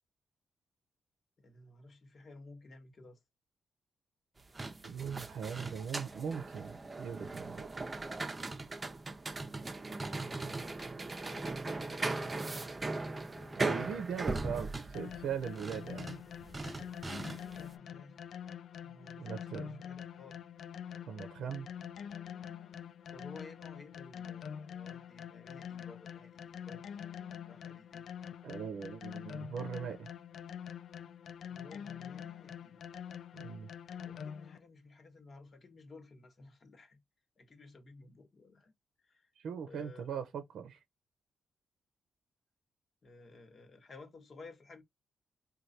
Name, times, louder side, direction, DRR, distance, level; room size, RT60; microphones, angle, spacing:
voice 1, 1.4-3.2 11.2-13.6 16.2-16.6 17.5-18.2 18.8-20.4 23.1-28.1 31.5-32.8 34.0-37.0 37.4-38.7 39.0-39.3 39.6-40.3 43.0-44.8, left 3 dB, 50° left, 1.2 m, -55 dB
sound 1, 4.4-17.7, right 2 dB, 30° right, 0.6 m, -39 dB
voice 2, 4.8-7.7 13.6-16.2 19.2-19.8 21.1-21.7 28.4-30.1 33.3-33.7 39.4-40.8, right 7 dB, 80° right, 0.6 m, -40 dB
sound 2, 14.9-34.6, left 8 dB, 75° left, 0.3 m, -45 dB
3.1 x 2.3 x 4.1 m
cardioid pair, 60°, 0 cm